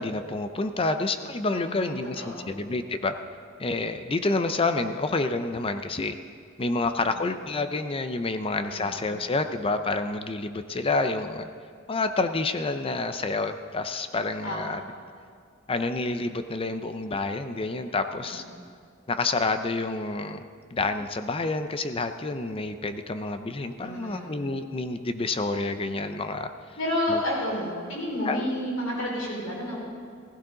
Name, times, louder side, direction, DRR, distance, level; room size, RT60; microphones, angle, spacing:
voice 1, 0.0-3.1 3.6-6.2 6.6-11.5 11.9-14.8 15.7-18.4 19.1-20.4 20.7-26.5 27.1-27.2 28.3-28.4, left 3 dB, 25° left, 9 dB, 0.5 m, -28 dB
voice 2, 1.5-2.5 7.0-7.3 8.7-8.9 14.4-14.6 18.2-18.4 23.8-24.3 26.8-29.8, left 1 dB, 85° left, -4 dB, 4.7 m, -31 dB
16.5 x 15.5 x 3.9 m, 2.2 s
head